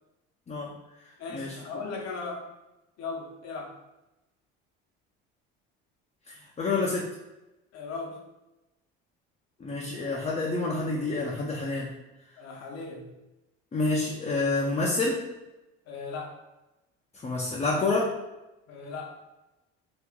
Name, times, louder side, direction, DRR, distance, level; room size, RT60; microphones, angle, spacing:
voice 1, 1.2-2.5 3.0-3.8 7.7-8.2 12.4-13.1 15.9-16.4 18.7-19.2, left 4 dB, 60° left, 0 dB, 0.8 m, -37 dB
voice 2, 6.3-7.1 9.6-11.9 13.7-15.2 17.1-18.1, left 3 dB, 20° left, -3 dB, 0.6 m, -28 dB
3.0 x 2.5 x 3.6 m, 0.98 s
supercardioid pair, 95°, 29 cm